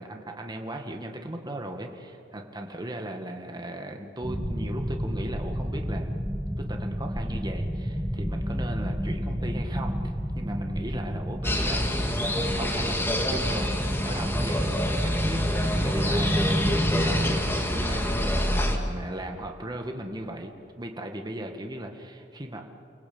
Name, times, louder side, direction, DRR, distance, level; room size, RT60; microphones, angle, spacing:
voice 1, 0.0-6.2 6.6-12.0 12.5-13.8 14.0-14.7 15.0-22.6, right 1 dB, 20° right, 3 dB, 1.9 m, -37 dB
sound 1, 4.2-17.4, equal, 5° right, 1.6 m, -30 dB
sound 2, 11.4-18.8, left 1 dB, 10° left, 2.4 m, -27 dB
30.0 x 20.0 x 8.8 m, 2.7 s
head